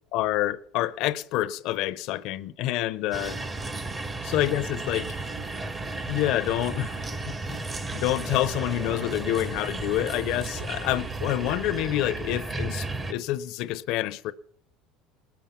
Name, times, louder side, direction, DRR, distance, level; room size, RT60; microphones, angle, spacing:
voice 1, 0.1-3.4 4.2-5.1 6.1-7.6 7.9-14.3, left 14 dB, 60° left, 0.6 m, -28 dB
sound 1, 3.1-13.1, right 3 dB, 15° right, 0.7 m, -34 dB
19.5 x 7.1 x 7.3 m
cardioid pair, 140°, 0 cm